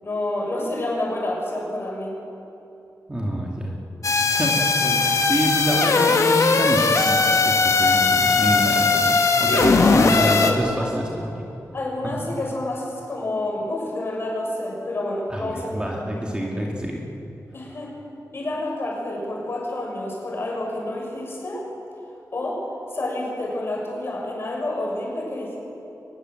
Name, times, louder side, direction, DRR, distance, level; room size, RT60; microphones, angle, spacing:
voice 1, 0.0-2.2 5.7-5.9 9.5-10.9 11.7-16.3 17.5-18.0 18.3-21.7 22.3-22.6 22.9-25.6, left 1 dB, 40° left, -1 dB, 6.5 m, -28 dB
voice 2, 3.1-3.7 4.1-9.6 9.9-11.4 12.0-12.2 15.3-17.0, equal, 15° right, -2 dB, 2.3 m, -27 dB
sound 1, 4.0-10.5, left 4 dB, 60° left, 2.0 m, -19 dB
23.5 x 20.5 x 7.9 m, 2.9 s
wide cardioid pair, 165°, 6 cm